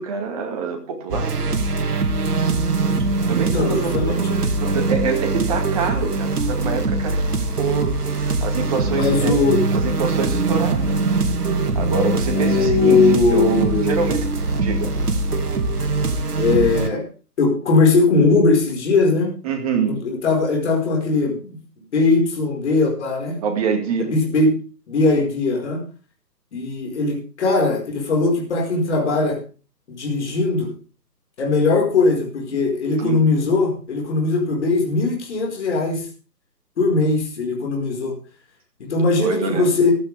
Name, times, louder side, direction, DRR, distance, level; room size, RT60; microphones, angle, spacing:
voice 1, 0.0-1.4 3.3-4.2 4.6-7.3 7.6-9.4 9.7-11.0 11.7-14.2 14.6-14.9 19.4-20.0 23.4-24.1 33.0-33.2 39.2-39.7, right 5 dB, 20° right, 4 dB, 2.2 m, -25 dB
sound 1, 1.1-16.9, right 3 dB, 65° right, 2.1 m, -22 dB
voice 2, 3.5-4.5 8.9-9.6 12.3-14.1 16.4-17.1 17.4-19.3 19.9-21.5 21.9-23.4 24.0-24.5 24.9-25.8 26.5-29.4 29.9-30.7 31.4-36.0 36.8-38.1 38.8-39.9, left 3 dB, 40° left, 1 dB, 5.0 m, -19 dB
15.0 x 13.0 x 3.5 m, 0.37 s
figure-of-eight pair, 155°, 50 cm